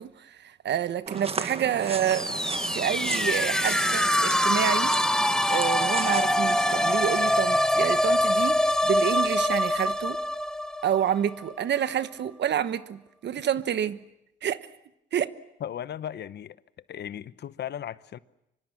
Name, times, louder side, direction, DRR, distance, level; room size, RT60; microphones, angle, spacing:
voice 1, 0.0-4.9 5.5-10.2 10.8-14.0 14.4-14.6 15.1-15.3, right 9 dB, 60° right, 1.1 m, -28 dB
sound 1, 1.1-7.1, right 4 dB, 30° right, 1.5 m, -35 dB
sound 2, 1.8-11.6, left 1 dB, 5° left, 0.8 m, -24 dB
voice 2, 15.6-16.6 16.9-18.2, left 10 dB, 60° left, 0.9 m, -36 dB
24.5 x 24.5 x 7.4 m
cardioid pair, 90°, 20 cm